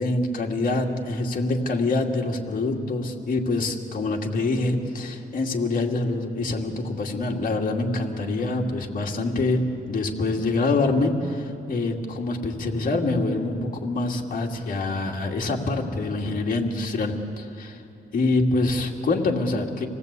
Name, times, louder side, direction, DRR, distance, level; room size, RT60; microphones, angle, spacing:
voice 1, 0.0-17.8 18.1-19.9, left 2 dB, 50° left, 0 dB, 2.4 m, -25 dB
27.0 x 18.0 x 8.3 m, 2.6 s
wide cardioid pair, 140°, 18 cm